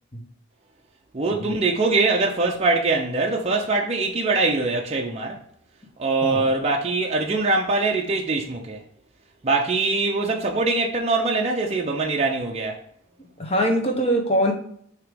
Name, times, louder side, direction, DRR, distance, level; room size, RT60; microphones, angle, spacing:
voice 1, 1.1-5.4 6.0-8.8 9.4-12.8, right 3 dB, 30° right, 0.6 m, -23 dB
voice 2, 6.2-6.5 13.2-14.5, equal, 30° left, 1.1 m, -23 dB
6.6 x 3.0 x 5.1 m
head